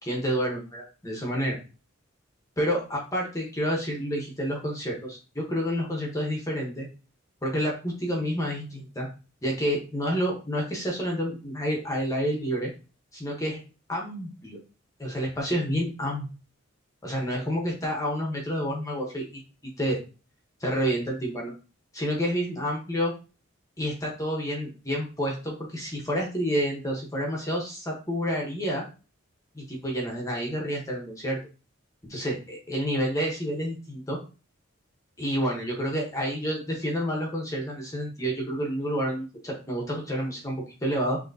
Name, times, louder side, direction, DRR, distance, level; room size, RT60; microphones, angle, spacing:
voice 1, 0.0-1.6 2.6-6.9 7.4-9.1 9.4-12.7 13.1-13.6 13.9-14.6 15.0-16.2 17.0-19.4 19.8-20.0 20.6-21.5 21.9-23.1 23.8-28.8 29.5-31.4 32.1-34.2 35.2-41.2, equal, 15° left, -1 dB, 1.0 m, -29 dB
6.4 x 2.9 x 2.7 m, 0.34 s
head